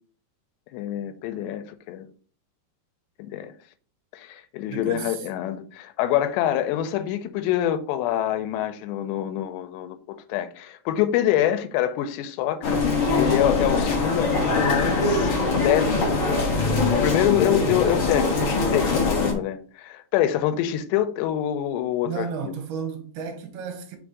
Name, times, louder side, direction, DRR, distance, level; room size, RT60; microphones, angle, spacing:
voice 1, 0.7-2.1 3.2-3.5 4.1-15.3 15.6-16.0 16.9-22.5, left 11 dB, 85° left, 2.7 m, -26 dB
voice 2, 4.7-5.2 17.4-17.8 22.0-24.0, right 6 dB, 70° right, 2.9 m, -33 dB
sound 1, 12.6-19.3, left 3 dB, 60° left, 1.4 m, -22 dB
6.3 x 3.6 x 4.8 m
omnidirectional pair, 5.0 m